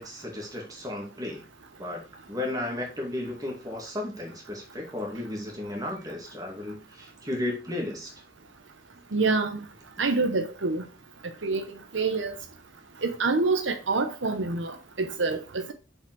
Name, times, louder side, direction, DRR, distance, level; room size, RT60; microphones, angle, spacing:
voice 1, 0.0-1.4 1.8-2.0 2.3-8.1, left 1 dB, 20° right, 2.5 m, -34 dB
voice 2, 9.1-9.6 10.0-10.8 11.4-11.6 11.9-12.3 13.0-15.7, right 3 dB, 75° right, 0.9 m, -26 dB
7.0 x 5.5 x 4.7 m
head